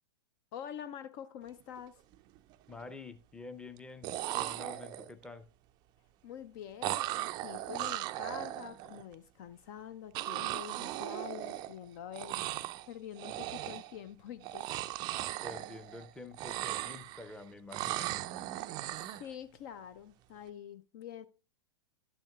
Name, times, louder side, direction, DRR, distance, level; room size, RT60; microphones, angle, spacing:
voice 1, 0.5-2.0 6.2-12.4 12.9-14.7 19.0-21.3, left 9 dB, 45° left, 0.5 m, -46 dB
sound 1, 1.6-1.8 2.1-2.7 3.8-3.9 4.0-5.2 6.8-9.0 10.1-11.9 12.1-12.9 13.2-14.0 14.4-16.1 16.3-17.3 17.7-19.3, right 15 dB, 35° right, 0.4 m, -37 dB
voice 2, 2.7-5.5 15.4-18.1, left 3 dB, 5° left, 0.7 m, -48 dB
12.0 x 9.0 x 2.3 m
figure-of-eight pair, 95°, 13 cm